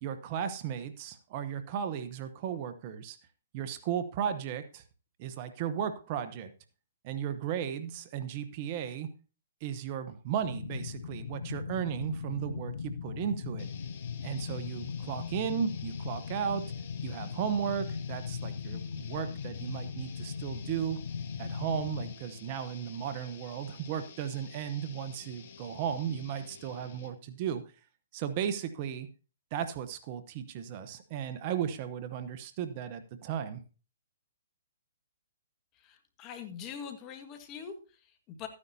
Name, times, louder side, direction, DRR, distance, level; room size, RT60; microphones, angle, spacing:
voice 1, 0.0-3.2 3.5-4.8 5.2-6.5 7.0-9.1 9.6-13.7 14.2-16.7 17.0-21.0 21.4-27.6 28.1-29.1 29.5-33.6, right 8 dB, 40° right, 10 dB, 1.0 m, -35 dB
sound 1, 10.4-22.1, left 6 dB, 80° left, 0.6 m, -39 dB
sound 2, 13.6-27.3, left 6 dB, 50° left, 1.6 m, -52 dB
voice 2, 35.7-38.5, left 7 dB, 30° left, 7 dB, 1.7 m, -44 dB
14.0 x 9.7 x 2.8 m, 0.35 s
hypercardioid pair, 135°, 0 cm